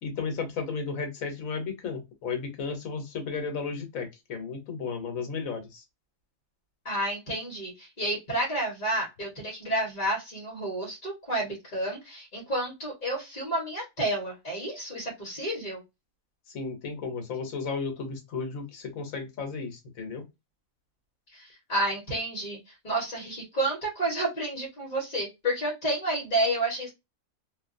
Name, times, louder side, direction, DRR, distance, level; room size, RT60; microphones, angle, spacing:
voice 1, 0.0-5.8 16.5-20.2, left 5 dB, 75° left, 1.3 m, -34 dB
voice 2, 6.8-15.8 21.3-26.9, right 1 dB, 35° left, 1.3 m, -30 dB
2.8 x 2.6 x 2.5 m
omnidirectional pair, 1.4 m